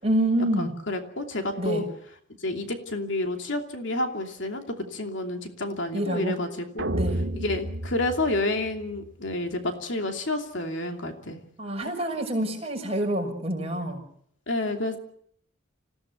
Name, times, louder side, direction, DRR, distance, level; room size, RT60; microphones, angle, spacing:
voice 1, 0.0-0.7 1.6-1.8 5.9-6.4 6.9-7.2 11.6-14.0, right 1 dB, 30° right, 2 dB, 6.0 m, -27 dB
voice 2, 0.6-1.8 2.4-6.9 7.4-11.4 14.5-15.0, left 2 dB, 65° left, 4 dB, 2.8 m, -29 dB
sound 1, 6.8-9.1, right 1 dB, 65° right, 2.3 m, -31 dB
26.5 x 16.5 x 8.3 m, 0.65 s
head